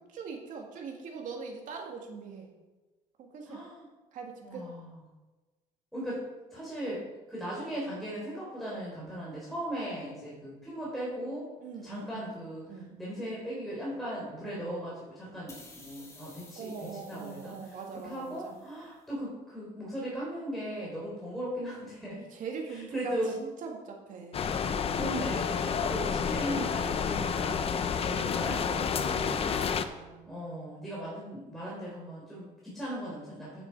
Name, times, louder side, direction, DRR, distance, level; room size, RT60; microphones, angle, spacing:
voice 1, 0.1-2.5 3.2-3.6 4.1-4.7 11.6-12.4 12.7-13.0 16.6-18.6 22.2-24.5 29.4-30.3, right 5 dB, 65° right, 2 dB, 2.1 m, -42 dB
voice 2, 3.5-3.9 4.4-5.0 5.9-6.2 6.5-7.0 7.3-11.5 11.8-22.2 22.7-23.4 25.0-29.5 30.3-33.6, equal, ahead, -7 dB, 3.8 m, -38 dB
sound 1, 15.5-18.9, left 2 dB, 20° left, 2.5 m, -54 dB
sound 2, 24.3-29.8, left 6 dB, 45° left, 0.8 m, -30 dB
9.8 x 7.5 x 4.8 m, 1.2 s
cardioid pair, 95°, 14 cm